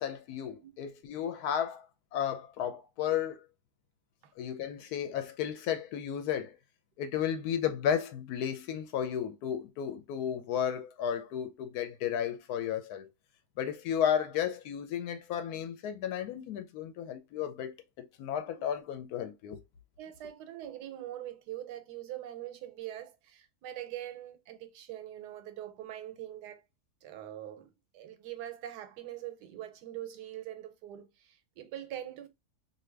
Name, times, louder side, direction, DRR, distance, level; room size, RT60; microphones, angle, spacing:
voice 1, 0.0-1.9 2.1-3.4 4.4-6.5 7.0-13.1 13.6-19.6, left 9 dB, 75° left, 1.1 m, -33 dB
voice 2, 20.0-26.6 27.0-32.3, right 12 dB, 90° right, 1.2 m, -43 dB
2.6 x 2.5 x 3.1 m
omnidirectional pair, 1.7 m